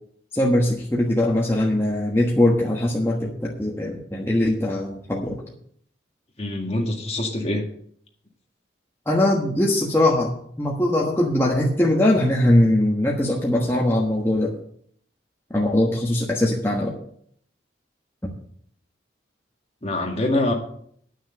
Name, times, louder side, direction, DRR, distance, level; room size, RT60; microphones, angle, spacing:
voice 1, 0.3-5.4 9.1-14.5 15.5-16.9 18.2-18.3, left 1 dB, 15° left, -2 dB, 1.2 m, -21 dB
voice 2, 6.4-7.6 19.8-20.5, left 1 dB, 35° left, 1 dB, 1.9 m, -24 dB
10.0 x 6.3 x 7.6 m, 0.65 s
head